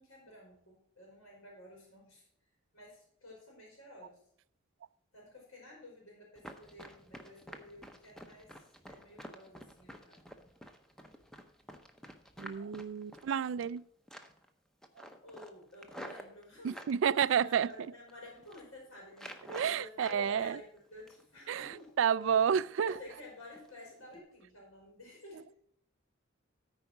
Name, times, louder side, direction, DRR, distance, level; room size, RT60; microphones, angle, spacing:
voice 1, 0.0-2.2 2.7-4.2 5.1-8.5 8.9-10.2 15.2-16.8 17.1-21.9 22.8-25.4, left 1 dB, 80° left, 4.2 m, -52 dB
Run, 6.4-13.8 14.1-14.5 14.8-17.0 17.5-18.1 18.4-18.7 19.1-20.2 20.6-21.4 21.7-21.9 22.3-22.6 23.0-23.1 23.6-23.7 24.1-24.2, equal, ahead, 0.7 m, -50 dB
voice 2, 12.4-13.8 16.6-17.7 19.5-20.6 21.5-21.7 22.0-23.0, right 8 dB, 70° right, 0.3 m, -30 dB
13.5 x 4.8 x 6.0 m
head